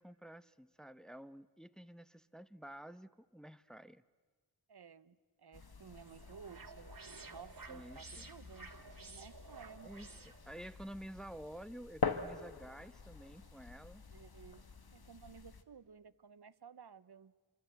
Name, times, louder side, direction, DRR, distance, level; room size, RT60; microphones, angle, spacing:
voice 1, 0.0-4.0 7.7-8.3 9.8-14.0, right 1 dB, ahead, 13 dB, 0.7 m, -51 dB
voice 2, 4.7-8.7 9.0-9.9 14.1-14.6 14.9-17.3, right 6 dB, 75° right, 16 dB, 0.8 m, -55 dB
sound 1, 5.5-15.6, left 5 dB, 70° left, 1.4 m, -45 dB
sound 2, 5.6-10.8, right 4 dB, 60° right, 1.9 m, -54 dB
27.5 x 24.5 x 8.0 m, 1.4 s
wide cardioid pair, 50°, 39 cm